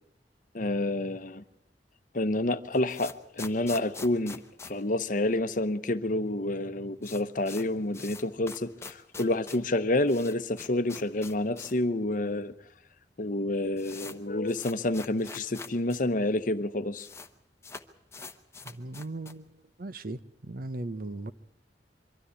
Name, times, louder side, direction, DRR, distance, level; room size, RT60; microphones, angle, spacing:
voice 1, 0.5-1.4 2.1-4.4 4.7-12.5 13.2-17.1, left 2 dB, 50° left, 0.9 m, -29 dB
sound 1, 2.7-5.7 6.0-6.1 6.3-6.4 6.7-11.9 12.2-12.3 13.0-13.1 13.3-16.0 16.3-16.4 16.6-17.3 17.6-19.5, left 4 dB, 15° left, 1.0 m, -45 dB
voice 2, 18.6-19.5 19.8-21.3, right 2 dB, 55° right, 0.8 m, -38 dB
23.5 x 13.0 x 9.6 m
head